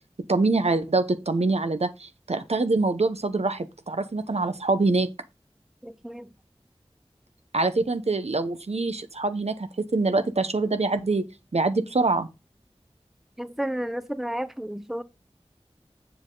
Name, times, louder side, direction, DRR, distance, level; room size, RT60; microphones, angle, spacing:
voice 1, 0.3-5.1 7.5-11.2 11.5-12.3, right 3 dB, 85° right, 0.9 m, -24 dB
voice 2, 5.8-6.3 13.4-15.0, right 1 dB, 5° right, 0.7 m, -32 dB
7.5 x 7.1 x 3.9 m
wide cardioid pair, 45°, 11 cm